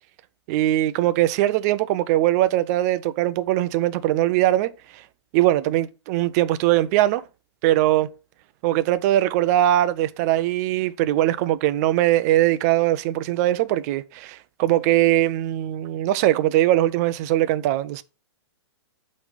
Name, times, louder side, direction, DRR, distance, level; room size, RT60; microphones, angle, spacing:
voice 1, 0.5-5.0 5.3-7.2 7.6-8.1 8.6-18.0, right 14 dB, 35° right, 0.4 m, -21 dB
8.0 x 3.2 x 5.1 m
hypercardioid pair, 130°, 15 cm